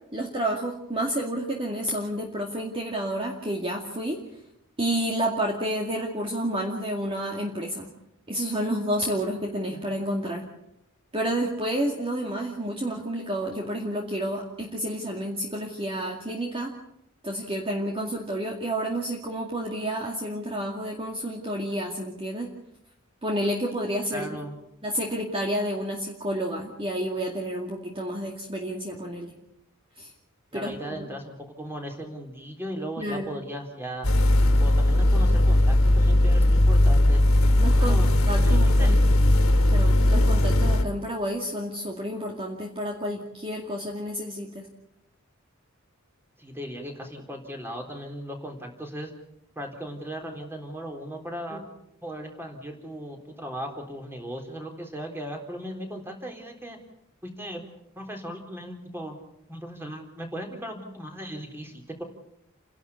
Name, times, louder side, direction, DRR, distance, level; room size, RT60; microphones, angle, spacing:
voice 1, 0.1-4.2 4.8-7.9 8.3-10.5 11.1-16.7 17.2-22.5 23.2-24.4 24.8-29.3 30.0-30.1 30.5-31.1 33.0-33.3 37.6-39.0 39.7-44.7 51.5-51.7, right 1 dB, 25° right, 0 dB, 2.3 m, -30 dB
voice 2, 24.1-24.6 30.5-34.1 34.6-37.2 37.8-38.1 38.4-39.0 46.4-49.1 49.6-51.6 52.0-56.8 57.2-57.6 57.9-59.2 59.5-62.0, equal, 10° right, 3 dB, 3.8 m, -37 dB
sound 1, 34.0-40.8, left 1 dB, 85° left, 2.3 m, -19 dB
29.5 x 12.0 x 8.5 m, 0.80 s
head